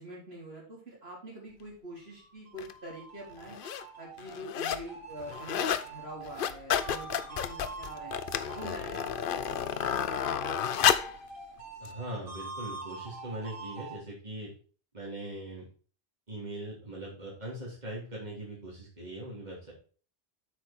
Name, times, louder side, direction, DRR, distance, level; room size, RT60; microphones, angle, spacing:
voice 1, 0.0-3.6 4.0-8.1 8.5-9.4, right 1 dB, 75° right, -5 dB, 4.2 m, -45 dB
sound 1, 2.2-14.0, right 4 dB, 60° right, 1.8 m, -45 dB
sound 2, 2.6-2.7 3.4-3.8 4.2-4.9 5.2-5.9 6.2-11.2 11.9-12.0, left 9 dB, 60° left, 0.7 m, -31 dB
voice 2, 11.8-14.5 14.9-15.7 16.3-19.7, right 1 dB, 45° right, -5 dB, 3.3 m, -40 dB
8.4 x 5.6 x 4.3 m, 0.39 s
omnidirectional pair, 1.1 m